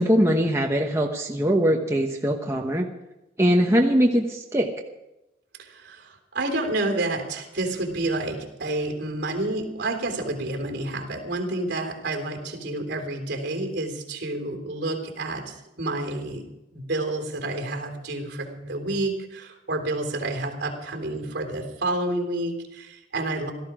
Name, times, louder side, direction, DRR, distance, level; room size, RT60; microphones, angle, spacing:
voice 1, 0.0-2.8 3.4-4.7, equal, 15° right, 1 dB, 1.0 m, -21 dB
voice 2, 5.6-16.4 16.7-23.5, right 2 dB, 60° right, 3 dB, 3.4 m, -29 dB
17.5 x 13.5 x 5.0 m, 0.93 s
head